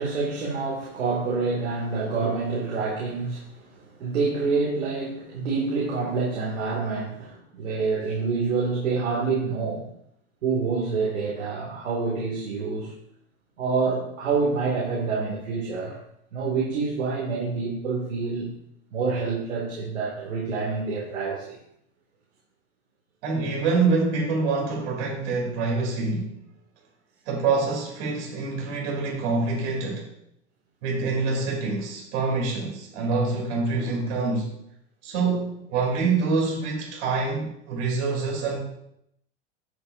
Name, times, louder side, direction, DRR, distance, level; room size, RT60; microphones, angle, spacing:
voice 1, 0.0-9.9 10.4-12.9 13.6-16.0 16.3-18.5 18.9-21.6, right 4 dB, 85° right, -4 dB, 2.6 m, -27 dB
voice 2, 23.2-26.4 27.2-30.1 30.8-34.6 35.0-38.6, right 4 dB, 65° right, -1 dB, 3.3 m, -26 dB
10.0 x 7.9 x 2.7 m, 0.76 s
hypercardioid pair, 105°, 36 cm